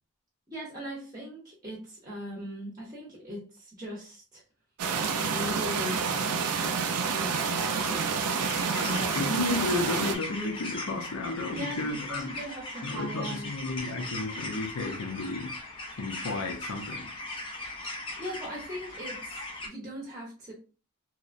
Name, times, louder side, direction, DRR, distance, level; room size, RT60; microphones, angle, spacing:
voice 1, 0.5-4.4 5.3-9.3 11.5-13.5 18.2-20.5, equal, 15° right, -4 dB, 0.7 m, -40 dB
sound 1, 4.8-10.2, right 5 dB, 90° right, 0.4 m, -28 dB
sound 2, 8.4-19.7, left 2 dB, 25° left, 0.4 m, -39 dB
voice 2, 9.1-12.4 12.8-15.6 15.9-17.3, left 3 dB, 80° left, 3 dB, 0.5 m, -33 dB
2.8 x 2.0 x 2.5 m, 0.35 s
head